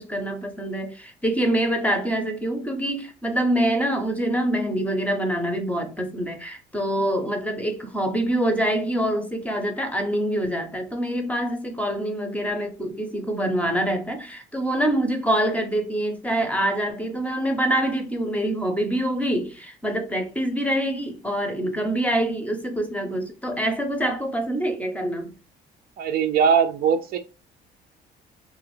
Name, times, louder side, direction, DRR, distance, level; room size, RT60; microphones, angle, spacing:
voice 1, 0.0-25.3, right 1 dB, 10° left, 0.6 m, -25 dB
voice 2, 26.0-27.2, right 7 dB, 65° right, 0.5 m, -20 dB
3.0 x 2.4 x 3.0 m
cardioid pair, 110°, 17 cm